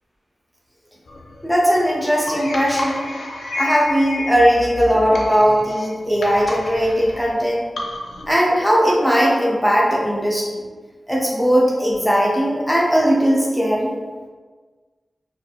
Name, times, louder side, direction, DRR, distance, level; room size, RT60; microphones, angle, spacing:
sound 1, 1.1-8.3, left 2 dB, 85° left, 0.4 m, -31 dB
voice 1, 1.4-3.1 3.5-7.6 8.3-10.5 11.1-13.9, equal, ahead, -4 dB, 0.6 m, -18 dB
2.9 x 2.4 x 2.5 m, 1.4 s
wide cardioid pair, 115°, 0 cm